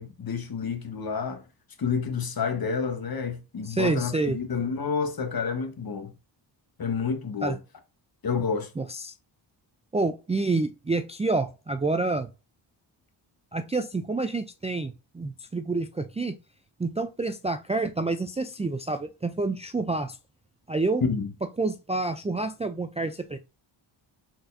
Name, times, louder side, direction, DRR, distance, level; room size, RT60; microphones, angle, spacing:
voice 1, 0.0-1.4 1.8-6.1 6.8-7.6 8.2-8.7 21.0-21.3, left 5 dB, 50° left, 1.3 m, -29 dB
voice 2, 3.6-4.4 7.4-7.6 8.8-9.1 9.9-12.3 13.5-16.3 16.8-20.2 20.7-21.0 21.6-23.4, right 3 dB, 15° right, 0.4 m, -28 dB
4.4 x 3.9 x 2.6 m
cardioid pair, 65°, 47 cm